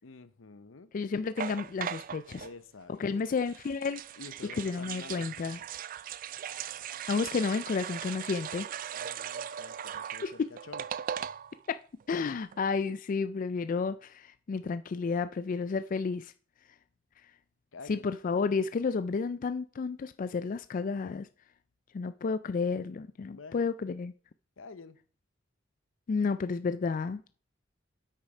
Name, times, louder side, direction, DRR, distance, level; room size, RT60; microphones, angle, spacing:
voice 1, 0.0-0.9 2.4-3.2 4.2-5.3 8.9-10.9 17.7-18.1 23.3-23.6 24.6-25.0, left 4 dB, 80° left, 0.8 m, -49 dB
voice 2, 0.9-2.4 2.9-4.0 4.6-5.6 7.1-8.7 10.2-10.5 11.7-11.8 12.1-16.3 17.9-21.3 21.9-24.1 26.1-27.2, left 4 dB, 45° left, 0.3 m, -31 dB
sound 1, 1.4-2.5 3.4-11.7 12.0-12.1 12.3-12.6, right 9 dB, 45° right, 0.3 m, -39 dB
8.3 x 6.5 x 4.9 m
head